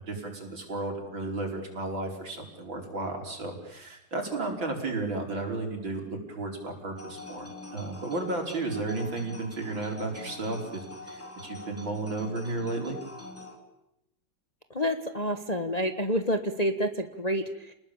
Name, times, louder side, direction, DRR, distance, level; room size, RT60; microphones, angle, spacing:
voice 1, 0.0-13.0, right 2 dB, 70° right, 2 dB, 5.9 m, -33 dB
sound 1, 6.9-13.6, left 2 dB, 5° left, 3.7 m, -45 dB
voice 2, 14.7-17.7, equal, 20° left, 7 dB, 1.4 m, -28 dB
30.0 x 20.0 x 8.8 m, 0.84 s
omnidirectional pair, 2.2 m